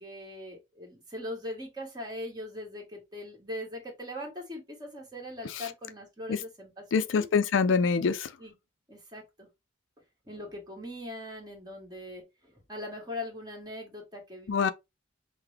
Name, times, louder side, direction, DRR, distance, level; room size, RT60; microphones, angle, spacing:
voice 1, 0.0-7.3 8.4-8.5 8.9-9.5 10.2-14.7, left 1 dB, 20° right, 1.5 m, -41 dB
voice 2, 6.9-8.3 14.5-14.7, left 5 dB, 65° left, 0.4 m, -25 dB
5.7 x 2.1 x 3.3 m
head